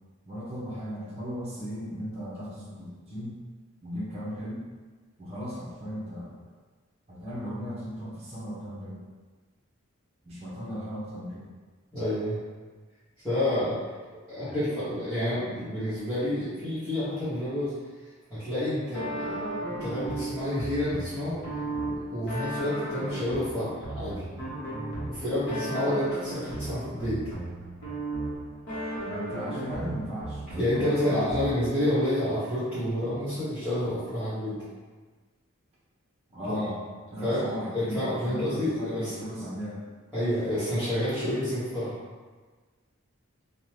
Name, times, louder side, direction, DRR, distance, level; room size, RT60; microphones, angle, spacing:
voice 1, 0.3-3.4 3.8-4.6 5.2-6.4 7.1-9.0 10.2-11.4 29.0-31.5 36.3-36.8 37.1-39.8, equal, 30° right, -8 dB, 0.7 m, -36 dB
voice 2, 11.9-12.4 13.2-13.8 14.3-17.7 18.3-21.4 21.8-24.2 25.1-27.2 30.6-34.6 36.4-36.6 37.2-37.5 37.7-39.1 40.1-42.0, left 1 dB, 5° left, -17 dB, 1.1 m, -29 dB
sound 1, 18.9-31.8, right 1 dB, 55° left, 0.9 m, -35 dB
2.7 x 2.2 x 3.1 m, 1.4 s
head